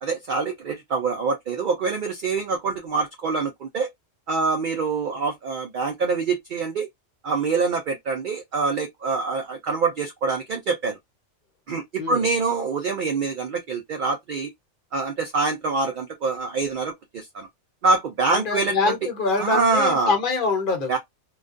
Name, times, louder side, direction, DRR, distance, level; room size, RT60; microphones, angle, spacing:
voice 1, 0.0-3.9 4.3-6.9 7.2-11.0 11.7-14.5 14.9-17.5 17.8-18.9 19.4-20.2 20.9-21.0, right 4 dB, 60° right, 0.5 m, -25 dB
voice 2, 18.3-21.0, left 4 dB, 45° left, 0.9 m, -24 dB
2.4 x 2.2 x 2.5 m
omnidirectional pair, 1.3 m